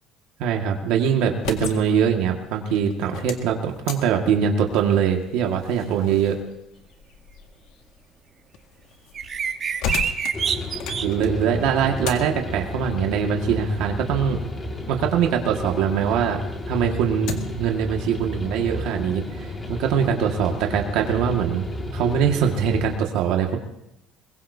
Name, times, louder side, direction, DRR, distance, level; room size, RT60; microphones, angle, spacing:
voice 1, 0.4-6.4 11.0-14.4 14.9-16.4 16.7-21.6 21.9-23.6, right 7 dB, 70° right, 2 dB, 1.8 m, -22 dB
sound 1, 1.2-15.9 16.3-17.7, left 6 dB, 70° left, 1.8 m, -38 dB
sound 2, 9.2-11.1, right 7 dB, 30° right, 1.1 m, -25 dB
sound 3, 10.3-23.0, left 1 dB, 15° left, 2.1 m, -32 dB
22.5 x 21.5 x 2.8 m, 0.86 s
cardioid pair, 180°, 0 cm